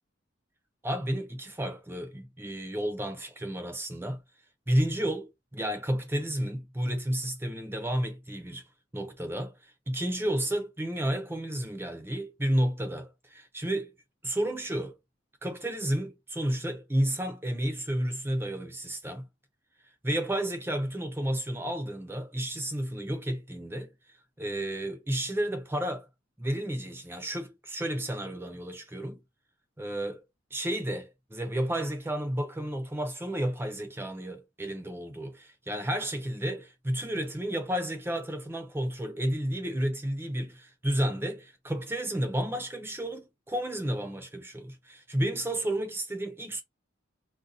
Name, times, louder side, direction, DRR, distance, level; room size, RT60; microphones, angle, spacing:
voice 1, 0.8-4.2 4.7-8.6 8.9-13.9 14.2-15.0 15.4-19.3 20.0-23.9 24.4-26.1 26.4-29.2 29.8-30.2 30.5-46.6, right 1 dB, 10° right, 0.5 m, -31 dB
2.6 x 2.2 x 3.7 m
head